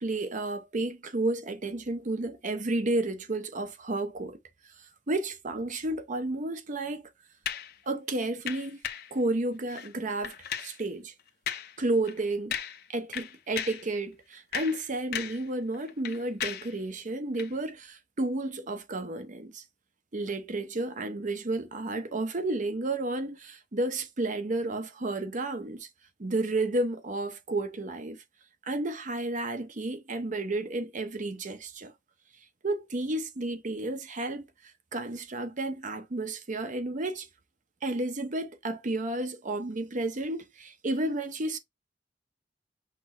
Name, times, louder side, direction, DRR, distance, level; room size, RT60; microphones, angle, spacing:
voice 1, 0.0-4.4 5.1-7.0 7.9-8.8 9.1-11.1 11.8-12.6 12.9-19.6 20.1-25.9 26.2-28.2 28.6-31.9 32.6-37.3 37.8-41.6, right 2 dB, 45° right, 0.7 m, -32 dB
sound 1, 7.4-7.7 8.5-9.1 9.7-9.9 10.2-10.8 11.5-11.8 12.1-12.2 12.5-12.9 13.1-13.9 14.3-15.5 15.7-16.7 17.3-17.5, left 9 dB, 60° left, 0.6 m, -36 dB
5.9 x 2.0 x 4.4 m
head